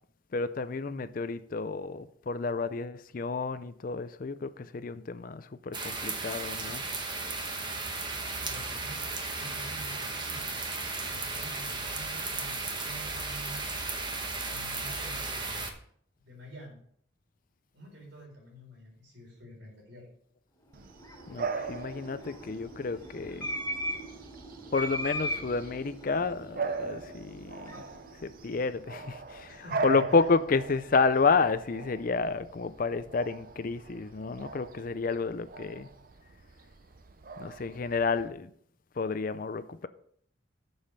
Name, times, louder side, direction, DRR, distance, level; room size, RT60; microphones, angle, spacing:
voice 1, 0.3-6.8 21.3-23.5 24.7-27.8 28.2-35.9 37.4-38.5 39.0-39.9, left 4 dB, 45° left, 0.4 m, -30 dB
sound 1, 5.7-15.7, right 3 dB, 25° right, 1.0 m, -35 dB
voice 2, 8.4-9.1 9.3-10.7 11.0-13.6 14.5-15.7 16.2-16.8 17.7-20.1 29.5-30.3, equal, 70° right, 4.3 m, -48 dB
sound 2, 20.7-29.2, equal, 15° left, 3.4 m, -40 dB
Bark / Bird vocalization bird call bird song, 20.7-38.3, right 4 dB, 45° right, 0.6 m, -41 dB
7.3 x 7.1 x 5.5 m
head